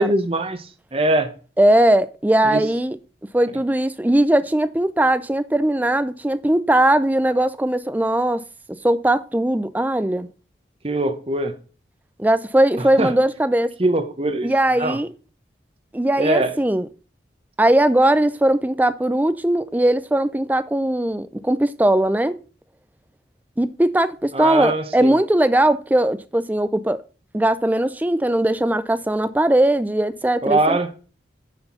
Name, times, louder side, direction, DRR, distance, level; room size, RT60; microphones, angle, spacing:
voice 1, 0.0-1.3 2.4-2.7 10.8-11.5 12.8-13.1 13.8-14.5 14.8-15.0 16.2-16.5 24.3-25.1 30.4-30.9, right 2 dB, 30° right, 0.8 m, -22 dB
voice 2, 1.6-3.0 3.3-8.4 8.7-10.3 12.2-13.8 14.4-15.1 15.9-16.9 17.6-22.4 23.6-27.0 27.3-30.8, right 1 dB, 10° right, 0.4 m, -19 dB
9.5 x 4.5 x 5.5 m
head